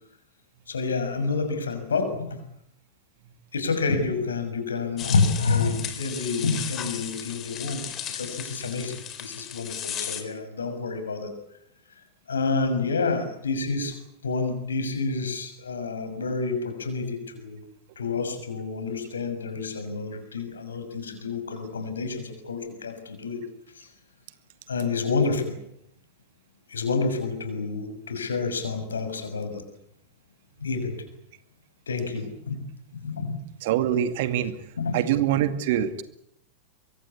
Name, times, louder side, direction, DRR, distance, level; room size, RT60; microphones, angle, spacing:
voice 1, 0.7-2.4 3.5-7.8 8.1-11.3 12.3-17.6 18.0-23.4 23.7-23.9 24.7-25.6 26.7-29.6 30.6-31.1 31.9-32.6 32.9-33.4 34.8-35.0, left 4 dB, 70° left, 8 dB, 6.1 m, -28 dB
sound 1, 5.0-10.2, left 9 dB, 30° left, 3.9 m, -35 dB
voice 2, 33.6-34.5 34.9-36.0, right 11 dB, 50° right, 11 dB, 2.2 m, -24 dB
24.0 x 23.5 x 8.4 m, 0.75 s
figure-of-eight pair, 90°, 0 cm